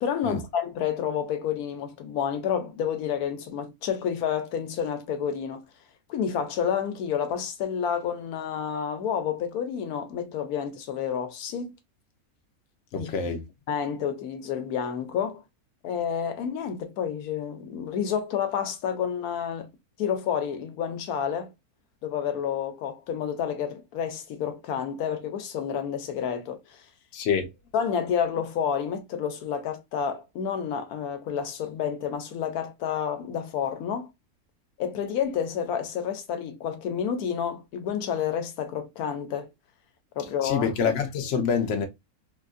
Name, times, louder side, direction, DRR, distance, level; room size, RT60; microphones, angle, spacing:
voice 1, 0.0-5.6 6.1-11.7 12.9-13.1 13.7-15.4 15.8-19.7 20.0-21.5 22.0-26.8 27.7-34.1 34.8-39.5 40.2-40.7, left 8 dB, 80° left, 1.1 m, -29 dB
voice 2, 12.9-13.4 27.1-27.5 40.4-41.9, left 6 dB, 60° left, 0.9 m, -26 dB
3.7 x 2.5 x 2.4 m
omnidirectional pair, 1.6 m